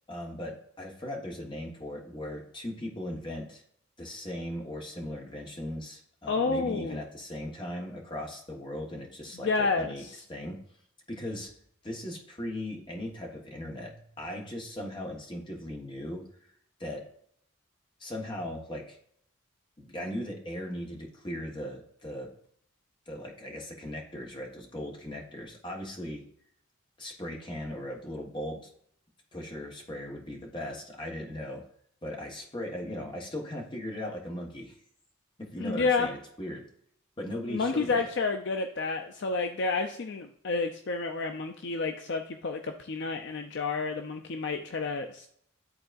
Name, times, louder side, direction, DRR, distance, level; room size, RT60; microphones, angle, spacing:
voice 1, 0.1-3.6 4.0-10.0 10.3-10.6 11.1-11.5 11.8-16.2 16.8-17.0 18.0-19.0 19.8-22.3 23.1-26.2 27.0-28.6 29.3-31.6 32.0-34.8 35.4-36.6 37.2-38.1, left 1 dB, 25° left, 0 dB, 1.3 m, -38 dB
voice 2, 6.3-7.0 9.4-10.2 35.6-36.1 37.5-45.3, left 4 dB, 55° left, 5 dB, 0.5 m, -30 dB
11.5 x 3.9 x 2.6 m, 0.66 s
head